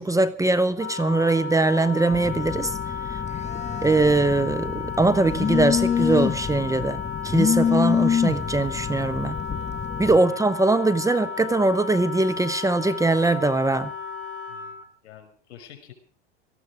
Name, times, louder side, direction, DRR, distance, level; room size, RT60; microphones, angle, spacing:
voice 1, 0.0-2.7 3.1-3.2 3.8-9.4 10.0-13.9, right 2 dB, 10° right, 0.9 m, -22 dB
Wind instrument woodwind instrument, 0.7-14.9, left 6 dB, 40° left, 3.9 m, -34 dB
Telephone, 2.1-10.2, left 7 dB, 20° left, 1.2 m, -26 dB
voice 2, 10.1-10.4 14.5-14.7 15.0-15.9, left 10 dB, 70° left, 5.5 m, -47 dB
18.5 x 14.0 x 4.9 m
hypercardioid pair, 90°, 34 cm